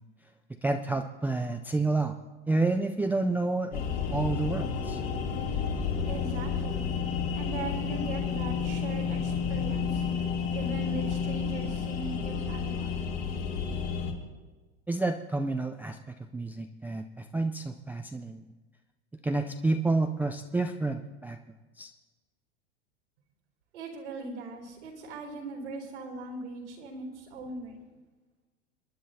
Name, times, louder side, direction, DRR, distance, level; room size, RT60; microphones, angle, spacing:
voice 1, 0.6-2.2 2.5-3.8 4.1-5.0 14.9-18.4 19.2-21.4 21.8-21.9, right 2 dB, 5° right, 4 dB, 0.4 m, -29 dB
sound 1, 3.7-14.1, left 6 dB, 60° left, 2.9 m, -31 dB
voice 2, 6.0-7.0 7.3-10.0 10.5-13.0 23.7-27.8, right 3 dB, 85° right, 2 dB, 3.8 m, -39 dB
28.0 x 10.0 x 2.8 m, 1.2 s
hypercardioid pair, 100°, 34 cm